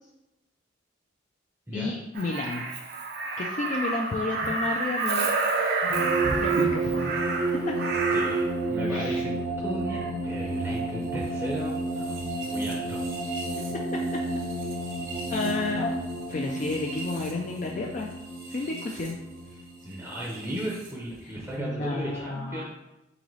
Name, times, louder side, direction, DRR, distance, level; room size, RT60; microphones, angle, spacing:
voice 1, 1.7-2.8 3.4-5.3 6.3-7.2 7.5-7.8 8.9-9.2 13.6-14.2 15.3-15.9 16.3-18.1 18.5-19.2 21.2-21.3 21.6-22.6, left 3 dB, 40° left, 0 dB, 0.4 m, -31 dB
Crow, 2.2-8.5 9.9-10.1, right 3 dB, 55° right, 0.5 m, -29 dB
sound 1, 5.9-20.9, right 2 dB, 75° right, 0.9 m, -31 dB
voice 2, 8.1-13.1 15.4-15.9 19.8-22.6, equal, 10° right, -4 dB, 0.6 m, -36 dB
3.9 x 3.8 x 3.1 m, 0.94 s
head